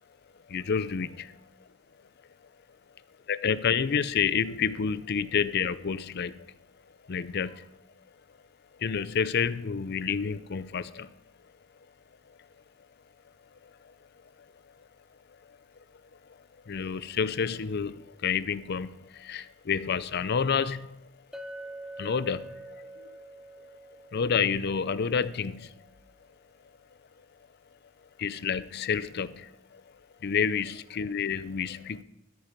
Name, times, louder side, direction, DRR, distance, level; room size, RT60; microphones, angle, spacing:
voice 1, 0.5-1.2 3.3-6.5 7.1-7.7 8.8-11.1 13.6-13.9 15.5-15.6 16.7-20.9 22.0-23.2 24.1-25.8 28.2-29.8 30.2-32.0, left 6 dB, 50° left, 16 dB, 0.5 m, -29 dB
Chink clink, 21.3-25.5, right 1 dB, ahead, 0.4 m, -45 dB
13.5 x 8.9 x 5.2 m, 0.91 s
head